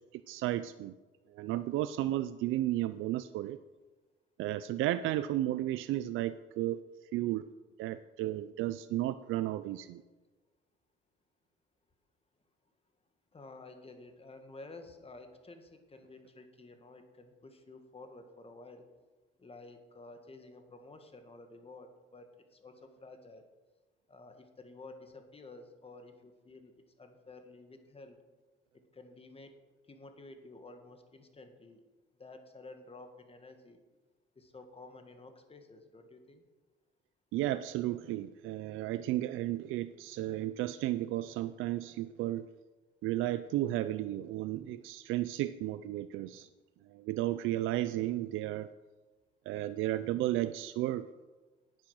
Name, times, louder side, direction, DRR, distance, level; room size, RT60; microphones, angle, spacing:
voice 1, 0.1-0.9 1.3-3.6 4.4-6.8 7.1-7.5 7.8-10.0 37.3-42.5 43.0-46.5 46.9-48.7 49.5-51.1, right 14 dB, 90° right, 13 dB, 0.4 m, -33 dB
voice 2, 13.3-18.9 19.4-23.5 24.1-28.2 28.9-29.5 29.9-31.8 32.2-33.8 34.3-36.4, left 2 dB, 30° left, 6 dB, 1.7 m, -52 dB
10.0 x 8.6 x 6.4 m, 1.2 s
cardioid pair, 90°, 20 cm